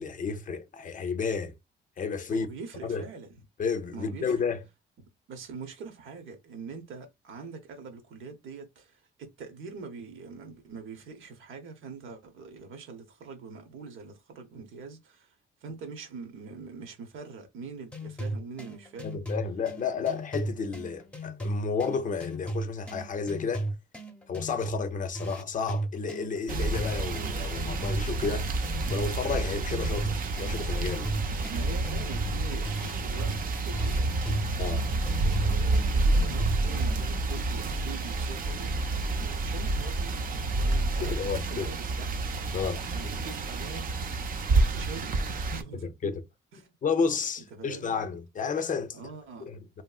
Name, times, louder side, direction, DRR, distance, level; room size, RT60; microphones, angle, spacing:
voice 1, 0.0-1.5 2.0-2.5 2.8-3.0 3.6-4.6 19.0-23.7 24.3-28.5 28.9-31.1 34.6-34.8 41.0-41.7 42.5-43.2 46.0-46.2 46.8-49.0 49.5-49.8, left 5 dB, 40° left, 0.5 m, -31 dB
voice 2, 2.3-3.3 3.9-4.3 5.0-15.4 15.6-19.2 19.9-20.1 31.5-38.7 39.1-42.4 42.7-45.2 45.5-45.9 46.5-46.7 47.5-48.0 48.9-49.5, right 4 dB, 80° right, 1.0 m, -44 dB
sound 1, 17.9-37.2, right 1 dB, 5° left, 0.8 m, -37 dB
sound 2, 26.5-45.6, right 2 dB, 45° right, 0.6 m, -29 dB
2.9 x 2.7 x 2.3 m
cardioid pair, 90°, 20 cm